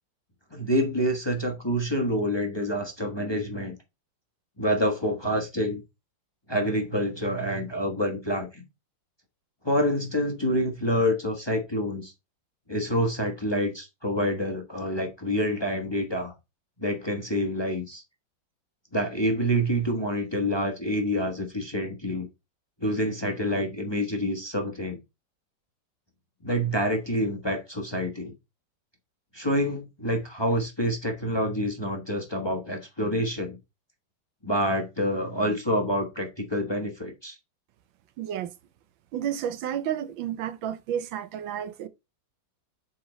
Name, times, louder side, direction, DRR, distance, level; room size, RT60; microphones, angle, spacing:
voice 1, 0.5-3.7 4.6-5.8 6.5-8.6 9.6-12.1 12.7-16.3 16.8-18.0 18.9-22.3 22.8-25.0 26.4-28.3 29.3-33.6 34.4-37.4, equal, 15° left, 1.1 m, -27 dB
voice 2, 38.2-38.5 39.1-41.9, right 10 dB, 90° right, 1.5 m, -31 dB
7.5 x 4.3 x 3.9 m
omnidirectional pair, 2.0 m